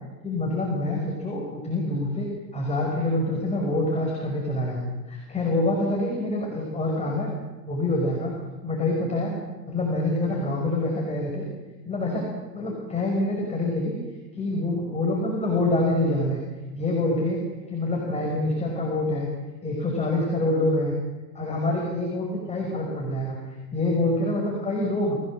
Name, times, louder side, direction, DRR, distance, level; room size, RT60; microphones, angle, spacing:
voice 1, 0.2-7.3 7.7-8.3 8.6-9.4 9.7-11.5 11.8-12.3 12.5-14.0 14.3-16.4 16.7-17.4 17.7-19.3 19.6-20.9 21.4-25.2, left 2 dB, 15° left, -1 dB, 5.8 m, -26 dB
28.5 x 17.5 x 7.7 m, 1.2 s
hypercardioid pair, 125°, 48 cm